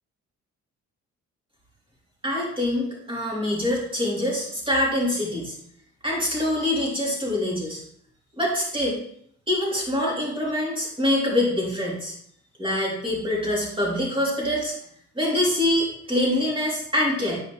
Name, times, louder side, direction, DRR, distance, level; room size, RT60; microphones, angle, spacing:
voice 1, 2.2-5.5 6.0-7.8 8.4-9.0 9.5-12.1 12.6-14.7 15.1-17.4, left 1 dB, 15° right, -3 dB, 3.3 m, -25 dB
9.6 x 5.0 x 3.4 m, 0.67 s
cardioid pair, 90°, 30 cm